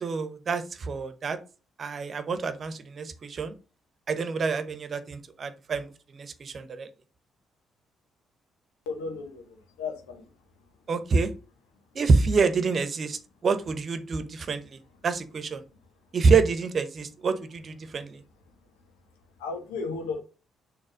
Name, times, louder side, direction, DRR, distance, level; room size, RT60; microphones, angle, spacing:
voice 1, 0.0-1.4 1.8-3.5 4.1-6.9 10.9-11.3 11.9-15.6 16.1-18.2, right 4 dB, 50° right, 10 dB, 1.0 m, -27 dB
voice 2, 8.9-10.3 19.4-20.2, left 4 dB, 80° left, 5 dB, 1.2 m, -34 dB
6.5 x 3.4 x 5.0 m, 0.34 s
hypercardioid pair, 45°, 0 cm